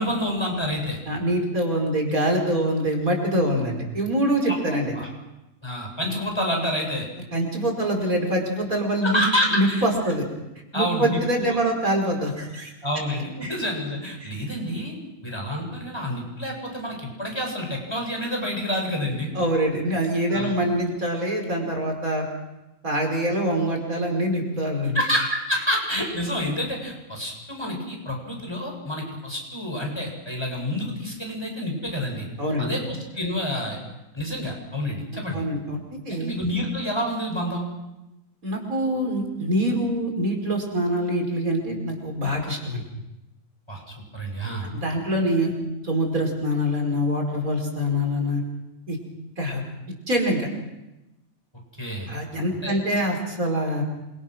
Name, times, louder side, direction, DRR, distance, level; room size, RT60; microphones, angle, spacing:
voice 1, 0.0-1.0 4.4-4.6 4.9-5.1 5.6-7.1 9.0-9.8 10.7-11.6 12.8-14.9 15.2-19.3 20.3-20.5 24.9-32.3 32.6-33.8 34.1-35.4 36.1-37.6 43.7-43.8 44.1-44.7 51.8-52.1 52.6-52.8, equal, 20° left, 1 dB, 7.4 m, -28 dB
voice 2, 1.1-4.9 7.3-9.2 9.5-10.2 10.7-12.7 13.4-13.5 14.2-14.3 19.3-22.2 22.8-25.0 32.4-32.7 35.3-35.8 36.0-36.3 38.4-42.8 44.6-45.5 45.8-48.4 48.9-49.0 49.4-49.6 50.1-50.5 52.1-53.8, equal, 75° right, 2 dB, 5.7 m, -24 dB
27.5 x 25.5 x 6.4 m, 0.96 s
omnidirectional pair, 1.5 m